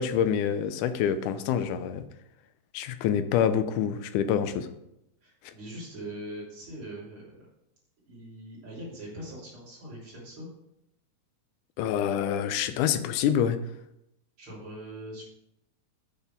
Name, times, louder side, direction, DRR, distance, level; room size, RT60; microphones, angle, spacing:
voice 1, 0.0-2.0 2.7-4.7 5.4-5.5 11.8-13.6, left 8 dB, 75° left, 10 dB, 1.9 m, -26 dB
voice 2, 5.2-7.4 8.1-10.5 14.4-15.2, right 1 dB, 40° right, -5 dB, 3.9 m, -42 dB
8.1 x 6.9 x 4.6 m, 0.83 s
omnidirectional pair, 4.0 m